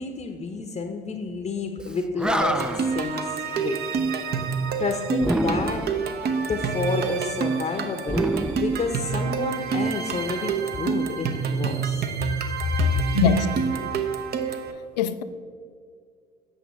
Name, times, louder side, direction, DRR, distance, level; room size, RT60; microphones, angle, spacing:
voice 1, 0.0-3.8 4.4-5.8 6.4-12.1 12.8-12.9, left 4 dB, 30° left, 0.7 m, -29 dB
Animal, 1.9-3.0 5.2-6.0 8.0-9.4, right 1 dB, 5° right, 0.3 m, -27 dB
sound 1, 2.4-14.7, right 6 dB, 50° right, 0.8 m, -27 dB
voice 2, 13.1-13.5 15.0-15.2, left 11 dB, 85° left, 0.4 m, -22 dB
8.3 x 6.4 x 3.1 m
hypercardioid pair, 60°, 21 cm